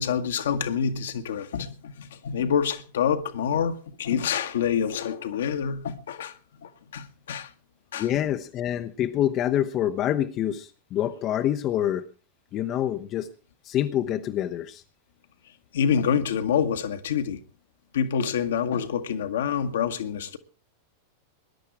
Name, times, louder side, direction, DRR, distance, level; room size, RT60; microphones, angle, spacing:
voice 1, 0.0-7.5 7.9-8.1 15.7-17.4 17.9-20.4, left 7 dB, 60° left, 1.4 m, -27 dB
voice 2, 7.9-12.0 12.5-13.3 13.7-14.8, left 11 dB, 35° left, 0.9 m, -26 dB
20.5 x 11.5 x 4.7 m
figure-of-eight pair, 90°, 0 cm